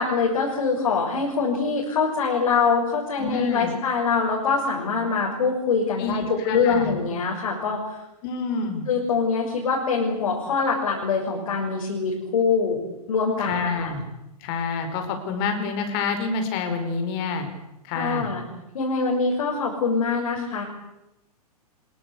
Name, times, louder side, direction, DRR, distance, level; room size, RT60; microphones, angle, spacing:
voice 1, 0.0-8.0 8.9-13.9 17.9-18.4 18.7-20.6, left 5 dB, 60° left, -1 dB, 6.4 m, -24 dB
voice 2, 3.2-3.7 6.0-6.9 8.2-8.9 13.4-14.0 14.4-17.5 17.8-18.3, left 4 dB, 40° left, 7 dB, 4.8 m, -28 dB
25.0 x 22.0 x 8.4 m, 0.91 s
figure-of-eight pair, 115°, 20 cm